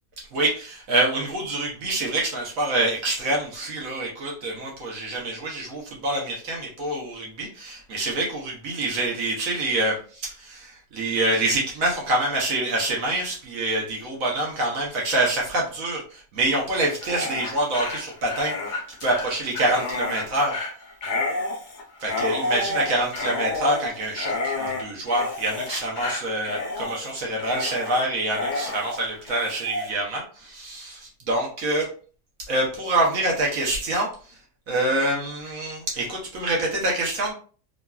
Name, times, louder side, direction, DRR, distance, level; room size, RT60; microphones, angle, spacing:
voice 1, 0.3-18.5 19.0-20.6 22.0-31.9 32.5-34.1 34.7-37.3, right 2 dB, 75° right, -2 dB, 1.2 m, -26 dB
Dog, 16.9-29.9, left 3 dB, 45° left, 0.6 m, -30 dB
3.0 x 2.5 x 2.2 m, 0.41 s
omnidirectional pair, 1.5 m